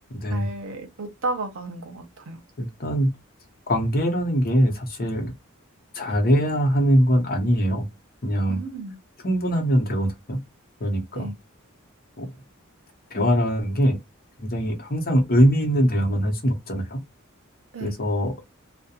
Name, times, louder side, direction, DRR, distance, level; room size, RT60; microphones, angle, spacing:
voice 1, 0.3-2.4 8.5-8.9 11.1-11.4 17.7-17.9, right 2 dB, 65° right, 0.8 m, -33 dB
voice 2, 2.6-3.1 3.7-5.3 5.9-7.9 8.2-8.6 9.2-10.4 10.8-11.3 12.2-12.3 13.1-14.0 14.4-17.0 17.8-18.3, equal, 45° left, 0.8 m, -22 dB
2.4 x 2.1 x 2.8 m
head